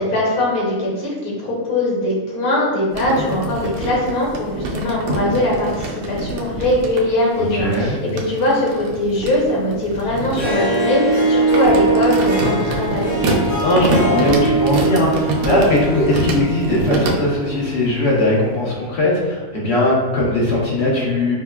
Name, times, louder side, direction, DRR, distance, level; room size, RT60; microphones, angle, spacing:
voice 1, 0.0-13.1, left 1 dB, 80° left, -4 dB, 1.4 m, -21 dB
sound 1, 2.9-7.1 7.7-17.1, right 2 dB, 80° right, 1.0 m, -25 dB
voice 2, 7.3-8.0 13.6-21.3, left 1 dB, 50° left, -5 dB, 1.1 m, -19 dB
Harp, 10.2-17.7, right 3 dB, 30° left, 1.3 m, -21 dB
5.5 x 2.1 x 2.3 m, 1.3 s
omnidirectional pair, 1.5 m